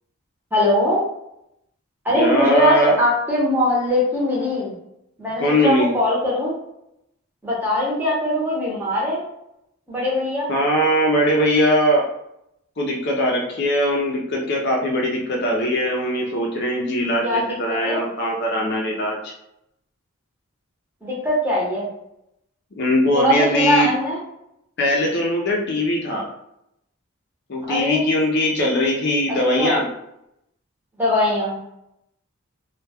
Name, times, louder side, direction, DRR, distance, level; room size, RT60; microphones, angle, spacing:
voice 1, 0.5-1.0 2.0-4.8 5.2-6.5 7.4-9.2 9.9-10.5 17.2-18.0 21.0-21.9 23.1-24.2 27.7-28.1 29.6-29.8 31.0-31.6, left 1 dB, 10° right, -6 dB, 0.8 m, -21 dB
voice 2, 2.1-3.0 5.4-5.9 10.5-12.0 12.8-19.3 22.8-23.9 24.8-26.3 27.5-29.9, equal, 50° left, -1 dB, 0.5 m, -20 dB
2.2 x 2.2 x 3.3 m, 0.80 s
head